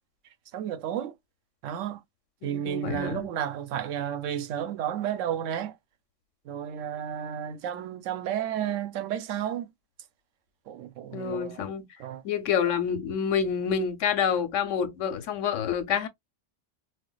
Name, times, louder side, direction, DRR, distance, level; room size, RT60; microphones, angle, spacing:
voice 1, 0.5-1.1 1.6-2.0 2.4-5.7 6.4-9.7 10.7-11.6 12.0-12.2, right 10 dB, 85° right, 1.0 m, -32 dB
voice 2, 2.4-3.3 11.1-11.9 12.2-16.1, left 7 dB, 80° left, 1.1 m, -28 dB
4.4 x 2.1 x 2.3 m
omnidirectional pair, 1.3 m